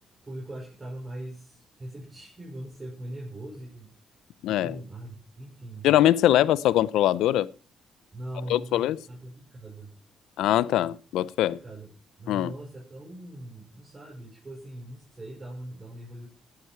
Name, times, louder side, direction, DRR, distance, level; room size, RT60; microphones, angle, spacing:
voice 1, 0.2-3.9 4.5-5.9 6.2-6.4 8.1-9.9 11.5-16.3, right 1 dB, 25° right, 5.5 m, -41 dB
voice 2, 4.4-4.8 5.8-7.5 8.5-9.0 10.4-11.6 12.3-12.5, left 13 dB, 85° left, 0.6 m, -22 dB
14.5 x 9.9 x 4.5 m
cardioid pair, 90°, 0 cm